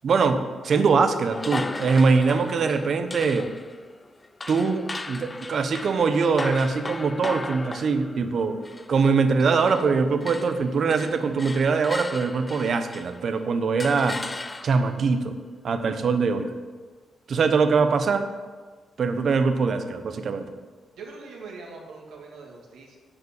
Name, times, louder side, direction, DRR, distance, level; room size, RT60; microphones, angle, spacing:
voice 1, 0.0-3.5 4.5-8.5 8.9-14.2 14.6-15.3 15.6-16.5 17.3-18.2 19.0-20.5, right 4 dB, 55° right, 8 dB, 0.9 m, -22 dB
sound 1, 1.3-9.9 10.2-13.3 13.8-15.0, left 2 dB, 20° left, 0.4 m, -37 dB
voice 2, 21.0-23.0, right 4 dB, 90° right, 0 dB, 2.0 m, -42 dB
9.6 x 5.0 x 7.1 m, 1.4 s
cardioid pair, 105°, 0 cm